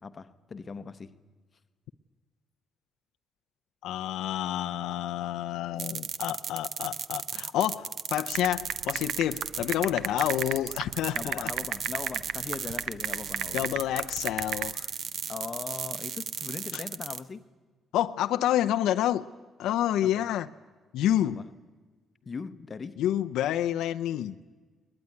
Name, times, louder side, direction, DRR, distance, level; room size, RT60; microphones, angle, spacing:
voice 1, 0.0-1.2 11.1-13.7 15.3-17.5 20.0-20.3 21.3-21.5 22.3-23.0, left 5 dB, 25° left, 0.9 m, -39 dB
voice 2, 3.8-11.5 13.5-14.9 16.7-16.8 17.9-19.2 19.6-20.5 20.9-21.4 23.0-24.3, left 12 dB, 90° left, 0.7 m, -28 dB
sound 1, 5.8-17.2, right 7 dB, 45° right, 0.8 m, -36 dB
sound 2, 8.4-14.7, right 11 dB, 75° right, 0.8 m, -33 dB
21.0 x 21.0 x 9.8 m
cardioid pair, 170°, 0 cm